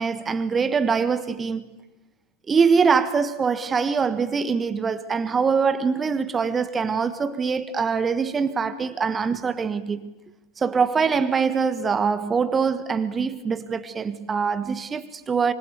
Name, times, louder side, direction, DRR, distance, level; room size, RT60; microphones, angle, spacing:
voice 1, 0.0-1.7 2.5-10.1 10.6-15.5, right 5 dB, 20° right, 1.4 m, -23 dB
26.0 x 25.5 x 8.4 m
figure-of-eight pair, 90°, 0 cm